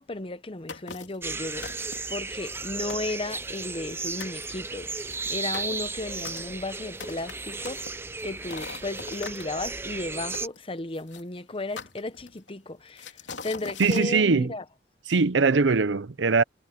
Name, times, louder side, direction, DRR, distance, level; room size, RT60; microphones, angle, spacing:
voice 1, 0.0-7.8 8.2-14.6, left 2 dB, 30° left, 1.0 m, -34 dB
sound 1, 0.7-1.2 1.6-2.2 2.6-2.7 2.9-3.9 4.2-4.4 5.0-9.4 10.3-11.2 11.8-12.5 13.0-14.1, left 5 dB, 85° left, 3.2 m, -41 dB
sound 2, 1.2-10.5, right 3 dB, 15° right, 0.6 m, -35 dB
voice 2, 13.8-14.5 15.1-16.4, right 4 dB, 90° right, 0.7 m, -21 dB
head